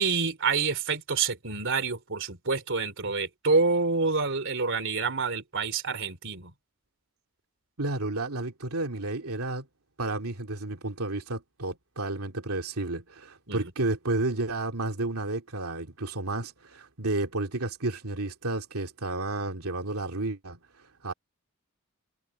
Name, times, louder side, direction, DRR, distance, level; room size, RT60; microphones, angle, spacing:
voice 1, 0.0-6.5 13.5-13.6, right 4 dB, 60° right, 3.4 m, -27 dB
voice 2, 7.8-9.7 10.0-21.1, right 2 dB, 85° right, 2.6 m, -31 dB
head